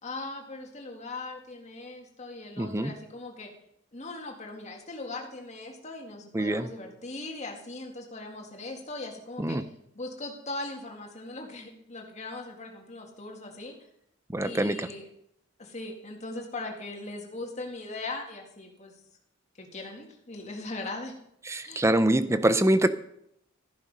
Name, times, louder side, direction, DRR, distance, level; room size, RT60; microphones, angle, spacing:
voice 1, 0.0-3.5 3.9-9.6 9.9-13.8 14.4-15.1 15.6-19.0 19.6-21.1 21.6-21.9, left 2 dB, 35° left, 1 dB, 2.1 m, -39 dB
voice 2, 2.6-2.9 6.3-6.7 9.4-9.7 14.3-14.9 21.5-22.9, right 1 dB, 15° right, 12 dB, 0.7 m, -24 dB
13.5 x 10.5 x 5.4 m, 0.74 s
head